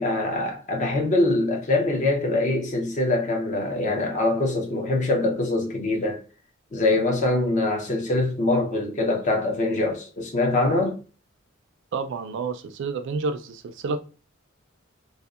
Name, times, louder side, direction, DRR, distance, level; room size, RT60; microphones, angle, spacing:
voice 1, 0.0-6.2 6.7-11.0, left 2 dB, 35° left, 0.5 m, -23 dB
voice 2, 11.9-14.0, right 4 dB, 60° right, 0.3 m, -29 dB
2.7 x 2.0 x 2.3 m
head